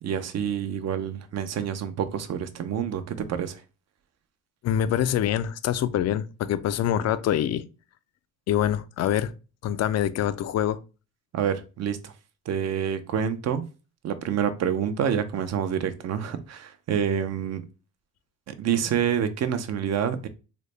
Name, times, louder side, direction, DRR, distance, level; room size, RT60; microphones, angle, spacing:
voice 1, 0.0-3.0 3.3-3.6 11.3-12.1 12.5-13.6 14.0-17.6 18.5-20.3, right 8 dB, 60° right, 0.6 m, -27 dB
voice 2, 4.6-7.6 8.5-9.3 9.6-10.8, left 10 dB, 60° left, 0.4 m, -25 dB
3.9 x 2.1 x 3.2 m
cardioid pair, 90°, 30 cm